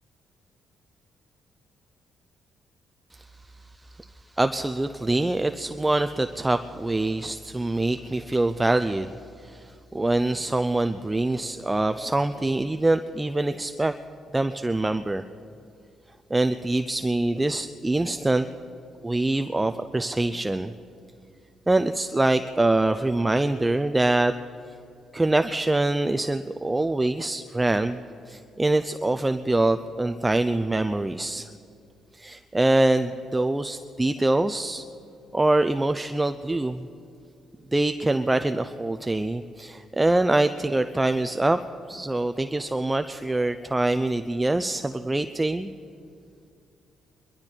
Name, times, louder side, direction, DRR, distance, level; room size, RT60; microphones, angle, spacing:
voice 1, 4.4-13.9 14.3-15.2 16.3-18.5 19.0-20.7 21.7-24.3 25.1-31.5 32.1-34.8 35.3-36.9 37.7-41.6 41.9-45.7, right 2 dB, 15° right, 9 dB, 0.5 m, -24 dB
23.0 x 12.0 x 4.5 m, 2.5 s
cardioid pair, 90°, 0 cm